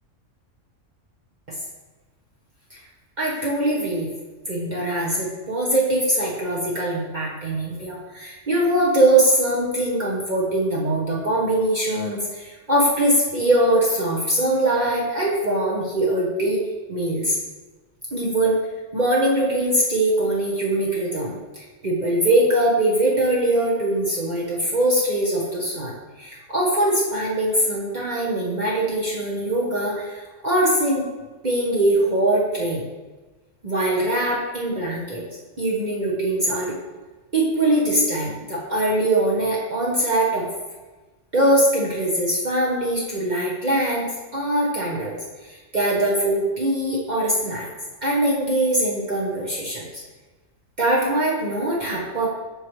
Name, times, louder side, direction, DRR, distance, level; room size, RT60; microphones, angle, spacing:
voice 1, 3.2-4.1 4.5-16.6 16.9-17.4 18.1-18.6 18.9-31.1 31.4-32.8 33.6-35.2 35.6-36.7 37.3-40.5 41.3-44.0 44.3-45.2 45.5-47.7 48.0-50.0 50.8-52.3, right 1 dB, 40° right, -5 dB, 1.1 m, -22 dB
8.0 x 6.3 x 3.1 m, 1.2 s
omnidirectional pair, 1.3 m